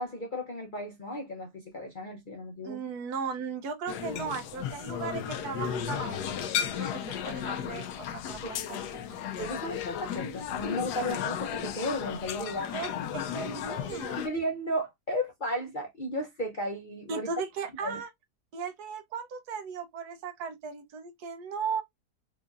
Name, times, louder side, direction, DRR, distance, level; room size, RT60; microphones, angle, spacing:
voice 1, 0.0-2.8 8.4-8.5 9.4-12.7 13.9-17.3 17.8-18.0, equal, 45° left, 0.7 m, -34 dB
voice 2, 2.6-9.2 12.7-12.9 13.1-14.2 17.1-18.1 18.5-21.8, right 5 dB, 75° right, 1.3 m, -37 dB
sound 1, 3.9-14.3, left 8 dB, 85° left, 1.2 m, -34 dB
4.8 x 2.6 x 2.4 m
omnidirectional pair, 1.7 m